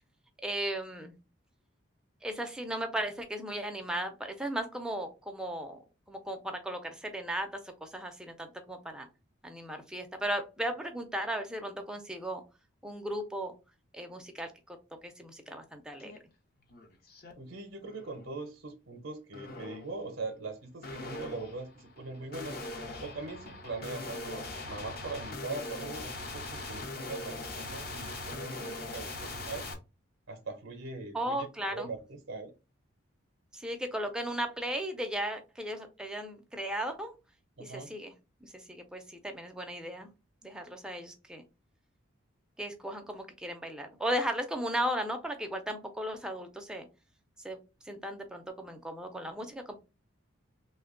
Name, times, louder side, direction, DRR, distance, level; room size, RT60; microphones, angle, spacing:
voice 1, 0.4-1.1 2.2-5.8 6.1-9.1 9.4-12.4 12.8-13.5 13.9-14.8 15.0-16.1 31.1-31.9 33.5-37.1 37.6-38.1 38.4-40.1 40.4-41.4 42.6-46.9 47.4-47.6 47.8-49.7, right 1 dB, 5° right, 5 dB, 0.4 m, -36 dB
sound 1, 16.0-16.2 16.6-17.3 17.8-18.3 19.3-19.9 20.8-29.7, left 2 dB, 45° left, 0.7 m, -41 dB
voice 2, 17.4-22.6 23.0-29.7 30.3-32.5 37.6-37.9, right 3 dB, 75° right, 5 dB, 0.6 m, -41 dB
3.2 x 2.2 x 3.6 m, 0.29 s
head